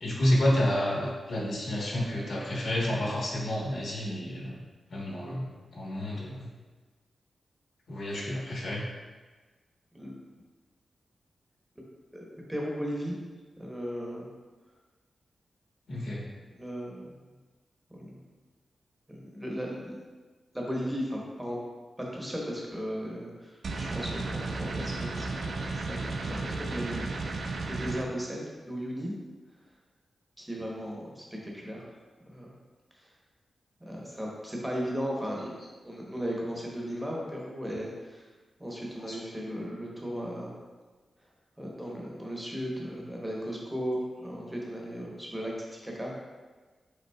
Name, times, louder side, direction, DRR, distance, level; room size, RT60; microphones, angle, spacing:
voice 1, 0.0-4.6 4.9-6.5 7.9-8.8 15.9-16.2 39.1-39.2, left 1 dB, 70° left, -5 dB, 1.1 m, -29 dB
voice 2, 12.5-13.1 13.6-14.3 16.6-17.1 17.9-18.2 19.1-20.0 20.5-21.6 22.1-26.0 26.3-27.0 27.4-29.1 30.4-31.9 32.2-32.5 33.0-33.1 33.8-35.5 35.8-38.3 38.6-40.6 41.6-46.1, equal, 10° right, -3 dB, 0.8 m, -36 dB
sound 1, 23.6-28.0, right 3 dB, 60° right, 0.3 m, -33 dB
5.2 x 3.9 x 2.2 m, 1.3 s
wide cardioid pair, 155°, 0 cm